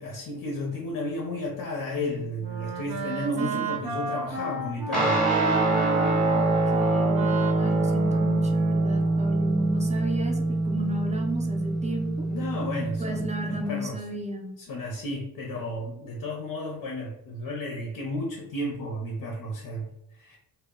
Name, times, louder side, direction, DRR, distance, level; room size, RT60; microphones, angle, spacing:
voice 1, 0.0-5.3 12.3-14.0 14.6-20.4, left 1 dB, 70° left, -1 dB, 0.6 m, -33 dB
Wind instrument woodwind instrument, 1.9-9.0, right 4 dB, 75° right, 0.6 m, -33 dB
Guitar, 4.9-13.7, right 2 dB, ahead, 0.7 m, -25 dB
voice 2, 6.3-12.3 13.0-14.5, right 1 dB, 20° right, 2 dB, 0.3 m, -34 dB
2.1 x 2.1 x 3.5 m, 0.80 s
wide cardioid pair, 145°, 37 cm